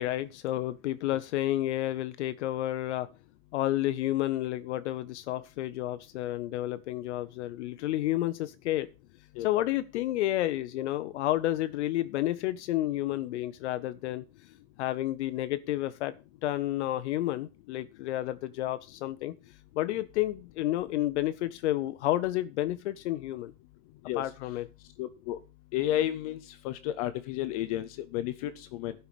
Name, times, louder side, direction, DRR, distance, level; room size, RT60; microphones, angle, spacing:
voice 1, 0.0-3.1 3.5-8.9 9.4-14.2 14.8-16.1 16.4-19.3 19.8-23.5 24.1-24.7, left 14 dB, 60° left, 13 dB, 0.8 m, -30 dB
voice 2, 25.0-25.4 25.7-26.4 26.6-28.9, left 13 dB, 30° left, 11 dB, 0.5 m, -31 dB
11.5 x 5.8 x 6.7 m, 0.31 s
supercardioid pair, 160°, 40 cm